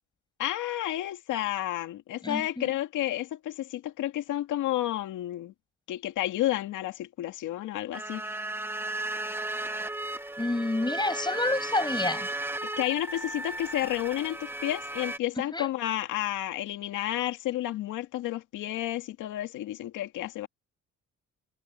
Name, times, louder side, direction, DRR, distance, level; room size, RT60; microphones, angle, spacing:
voice 1, 0.4-5.5 5.9-8.4 12.8-20.5, left 14 dB, 90° left, 2.2 m, -31 dB
voice 2, 2.2-2.7 10.4-12.3 15.5-15.7, left 2 dB, 15° left, 6.9 m, -29 dB
sound 1, 7.9-15.2, right 2 dB, 5° right, 1.2 m, -35 dB
cardioid pair, 90°, 30 cm